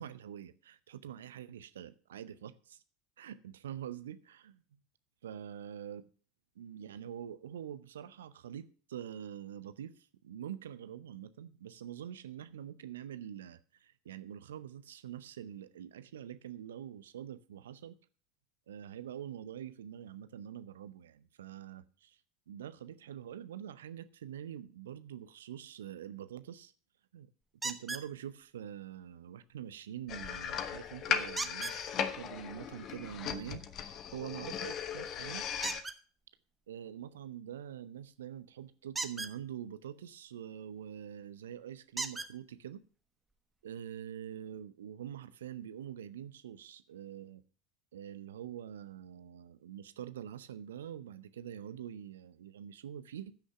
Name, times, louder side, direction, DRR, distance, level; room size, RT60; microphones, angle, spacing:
voice 1, 0.0-2.8 3.2-4.6 5.2-6.0 6.6-18.0 18.7-22.2 22.5-26.7 27.1-27.3 27.6-35.5 36.7-42.8 43.6-47.4 47.9-53.4, right 10 dB, 70° right, 0.6 m, -45 dB
sound 1, 27.6-28.1 31.4-31.8 35.6-36.0 38.9-39.3 41.0-41.1 42.0-42.3 43.3-43.4 43.9-44.0, right 3 dB, 15° right, 1.2 m, -37 dB
sound 2, 30.1-35.8, left 7 dB, 40° left, 1.2 m, -37 dB
15.0 x 6.4 x 5.7 m
figure-of-eight pair, 75°, 0 cm